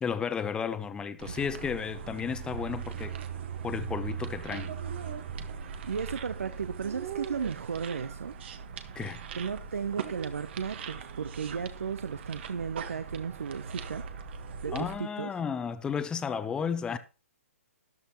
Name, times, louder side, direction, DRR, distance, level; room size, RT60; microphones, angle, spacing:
voice 1, 0.0-3.2 3.6-4.7 9.0-9.2 14.7-17.0, left 6 dB, 10° left, 0.8 m, -33 dB
sound 1, 1.2-14.9, right 7 dB, 50° right, 1.4 m, -39 dB
voice 2, 5.8-8.4 9.3-14.1 14.6-15.3, right 6 dB, 75° right, 0.8 m, -35 dB
13.0 x 11.0 x 3.0 m
hypercardioid pair, 135°, 8 cm